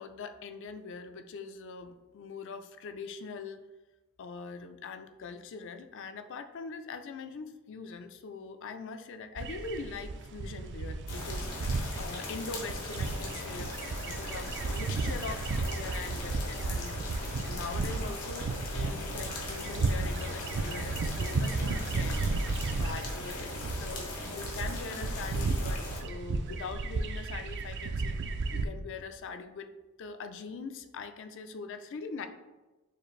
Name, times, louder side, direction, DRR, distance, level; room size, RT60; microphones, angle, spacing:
voice 1, 0.0-3.6 4.2-13.7 14.0-17.0 17.4-22.3 22.7-29.7 30.0-32.3, left 4 dB, 60° left, 9 dB, 0.4 m, -42 dB
sound 1, 9.4-28.7, right 3 dB, 55° right, 0.3 m, -34 dB
sound 2, 11.1-26.0, left 2 dB, 85° left, 1.2 m, -40 dB
6.6 x 2.5 x 3.1 m, 1.1 s
head